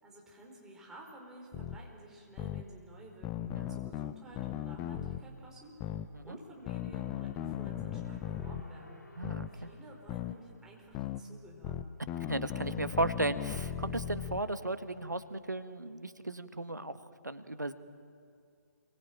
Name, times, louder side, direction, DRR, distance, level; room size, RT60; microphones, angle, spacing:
voice 1, 0.0-9.0 9.5-11.8, right 1 dB, 5° right, -3 dB, 4.9 m, -53 dB
sound 1, 1.5-1.8 2.4-2.6 3.2-5.2 5.8-6.1 6.7-8.6 9.2-9.5 10.1-10.4 10.9-11.2 11.6-14.4, left 11 dB, 20° left, 0.8 m, -37 dB
sound 2, 6.0-11.5, left 1 dB, 75° left, 3.3 m, -57 dB
voice 2, 9.2-9.7 12.3-17.7, right 2 dB, 85° right, 10 dB, 1.6 m, -35 dB
27.5 x 23.5 x 9.1 m, 2.3 s
figure-of-eight pair, 135°, 9 cm